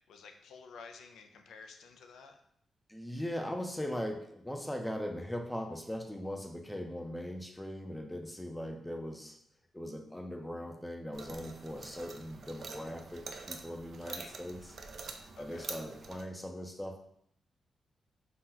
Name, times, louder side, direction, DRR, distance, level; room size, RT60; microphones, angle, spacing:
voice 1, 0.1-2.4 14.0-14.3 15.4-15.7, left 5 dB, 85° left, 5 dB, 0.3 m, -52 dB
voice 2, 2.9-9.4 9.7-14.7 15.4-17.0, equal, 5° left, 3 dB, 0.5 m, -40 dB
sound 1, 11.1-16.2, right 4 dB, 60° right, 0.3 m, -46 dB
2.8 x 2.0 x 3.7 m, 0.70 s
cardioid pair, 80°, 0 cm